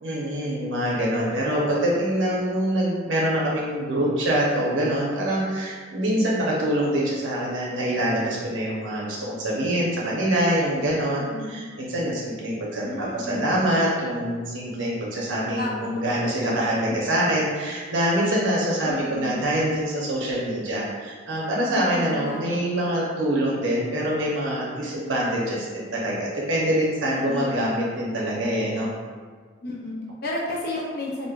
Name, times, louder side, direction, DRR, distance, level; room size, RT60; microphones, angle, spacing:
voice 1, 0.0-28.9, right 1 dB, 75° right, -5 dB, 0.7 m, -25 dB
voice 2, 11.1-11.6 12.8-13.7 15.5-16.0 16.8-17.3 18.8-19.4 21.7-22.6 27.0-27.6 29.6-31.3, left 2 dB, 50° left, -4 dB, 0.5 m, -32 dB
5.0 x 2.1 x 2.4 m, 1.6 s
head